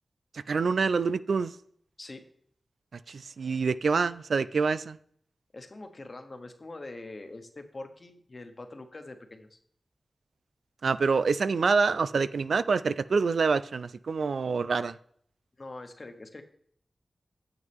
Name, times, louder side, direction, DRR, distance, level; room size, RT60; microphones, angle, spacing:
voice 1, 0.3-1.6 3.1-5.0 10.8-15.0, right 4 dB, 85° right, 15 dB, 0.3 m, -26 dB
voice 2, 5.5-9.6 14.8-14.9 15.6-16.4, left 2 dB, 40° left, 6 dB, 1.2 m, -44 dB
9.4 x 7.9 x 3.6 m, 0.64 s
wide cardioid pair, 90°, 0 cm